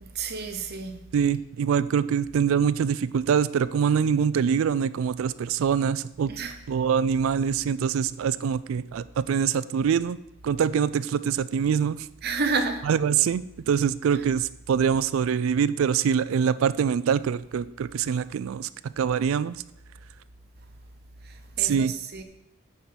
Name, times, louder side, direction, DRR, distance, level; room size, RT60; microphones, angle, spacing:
voice 1, 0.0-1.0 6.3-6.6 12.2-12.9 21.2-22.2, right 4 dB, 50° right, 0.9 m, -30 dB
voice 2, 1.1-6.3 6.7-10.2 10.4-12.1 12.8-18.7 19.0-19.6 21.6-21.9, right 7 dB, 75° right, 0.3 m, -24 dB
8.7 x 4.6 x 5.8 m
head